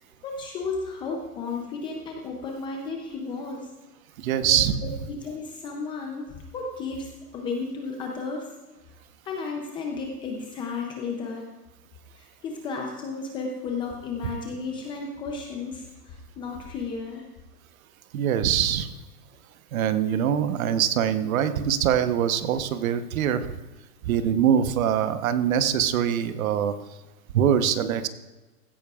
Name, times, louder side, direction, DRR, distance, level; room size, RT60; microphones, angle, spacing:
voice 1, 0.2-3.7 4.4-4.6 4.8-8.5 9.2-11.5 12.2-17.3, left 4 dB, 10° left, 1 dB, 0.4 m, -33 dB
voice 2, 4.2-4.8 18.1-18.9 19.7-23.5 24.0-26.8 27.3-28.1, right 9 dB, 55° right, 11 dB, 1.0 m, -23 dB
16.0 x 14.0 x 2.4 m, 1.2 s
hypercardioid pair, 135°, 49 cm